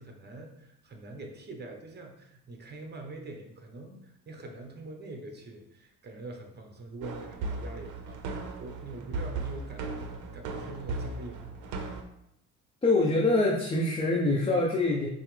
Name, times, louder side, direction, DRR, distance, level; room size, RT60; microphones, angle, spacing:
voice 1, 0.0-11.5, right 2 dB, 35° right, 3 dB, 0.9 m, -44 dB
sound 1, 7.0-12.0, right 3 dB, 85° right, 0.6 m, -37 dB
voice 2, 12.8-15.1, left 2 dB, 20° left, -2 dB, 0.6 m, -25 dB
5.4 x 2.0 x 3.2 m, 0.79 s
cardioid pair, 90°, 30 cm